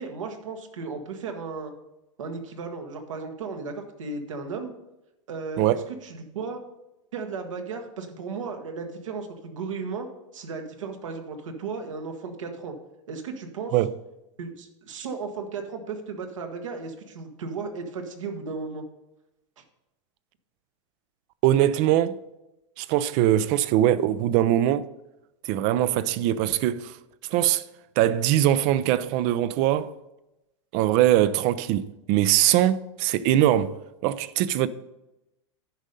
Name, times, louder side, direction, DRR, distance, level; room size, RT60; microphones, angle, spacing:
voice 1, 0.0-1.7 2.2-4.7 5.3-5.8 6.0-6.6 7.1-10.1 10.3-12.7 13.1-13.7 14.4-18.8 19.6-19.7, right 4 dB, 80° right, 1.4 m, -35 dB
voice 2, 21.4-22.2 22.8-24.8 25.4-27.0 27.3-27.6 28.0-29.9 30.7-33.7 34.0-34.7, right 12 dB, 50° right, 0.5 m, -22 dB
10.0 x 5.3 x 5.2 m
hypercardioid pair, 105°, 16 cm